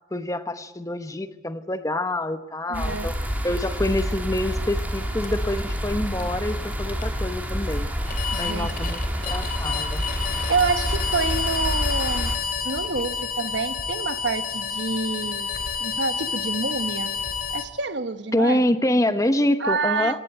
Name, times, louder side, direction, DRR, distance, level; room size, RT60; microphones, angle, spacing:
voice 1, 0.1-3.1 3.4-7.9 8.4-10.0 18.3-20.2, left 1 dB, 20° left, 10 dB, 1.0 m, -26 dB
sound 1, 2.7-12.4, equal, 10° right, 2.7 m, -28 dB
voice 2, 2.7-3.1 8.3-8.7 9.1-9.2 10.5-12.4 12.6-15.5 15.8-17.1 17.5-18.6 19.6-20.2, right 4 dB, 70° right, 10 dB, 1.2 m, -27 dB
sound 2, 5.2-17.6, left 6 dB, 50° left, 2.8 m, -30 dB
18.5 x 17.0 x 9.2 m, 1.1 s
head